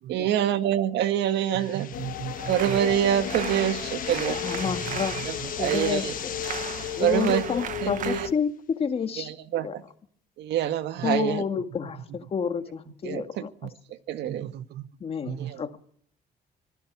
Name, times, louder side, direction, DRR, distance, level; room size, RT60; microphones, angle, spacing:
voice 1, 0.1-1.9 2.5-4.4 5.3-6.1 7.0-7.4 7.8-8.3 9.2-9.8 10.4-11.4 13.0-13.4 14.1-14.5 15.4-15.8, right 11 dB, 85° right, 10 dB, 1.8 m, -26 dB
sound 1, 1.2-8.2, left 10 dB, 50° left, 1.4 m, -39 dB
voice 2, 1.5-2.8 4.6-5.5 11.0-11.2 11.9-12.2 13.6-13.7 14.3-14.9 15.2-15.6, right 11 dB, 65° right, 14 dB, 1.0 m, -37 dB
sound 2, 1.9-8.3, left 11 dB, 80° left, 1.8 m, -35 dB
sound 3, 2.4-8.3, right 8 dB, 45° right, 1.3 m, -37 dB
voice 3, 4.1-5.2 5.6-6.3 7.0-9.3 9.6-9.7 11.0-13.7 15.0-15.8, left 6 dB, 35° left, 7 dB, 2.0 m, -30 dB
25.5 x 16.5 x 7.4 m, 0.64 s
cardioid pair, 165°, 18 cm